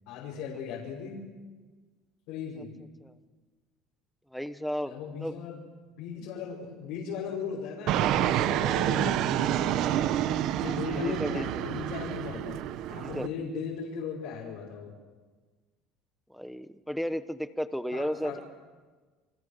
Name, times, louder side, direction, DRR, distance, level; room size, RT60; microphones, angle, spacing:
voice 1, 0.1-1.2 2.3-2.7 4.8-5.6 6.0-9.8 10.6-12.6 12.9-14.9 17.9-18.4, left 6 dB, 70° left, -3 dB, 5.8 m, -37 dB
voice 2, 4.3-4.9 5.2-5.3 10.1-10.4 10.9-11.4 12.9-13.3 16.3-18.4, equal, ahead, 12 dB, 1.0 m, -34 dB
Fixed-wing aircraft airplane, 7.9-13.3, right 11 dB, 55° right, 1.1 m, -28 dB
29.5 x 26.0 x 6.8 m, 1.4 s
cardioid pair, 155°, 0 cm